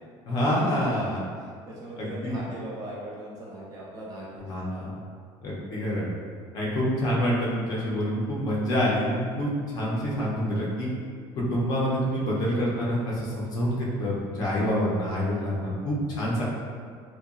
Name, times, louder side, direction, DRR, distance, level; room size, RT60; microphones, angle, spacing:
voice 1, 0.3-1.2 2.0-2.5 4.4-4.9 5.4-6.1 6.5-10.9 11.4-16.4, equal, 40° left, -5 dB, 0.5 m, -27 dB
voice 2, 1.7-4.4, right 1 dB, 35° right, -5 dB, 0.6 m, -39 dB
2.8 x 2.2 x 2.3 m, 2.1 s
cardioid pair, 160°, 10 cm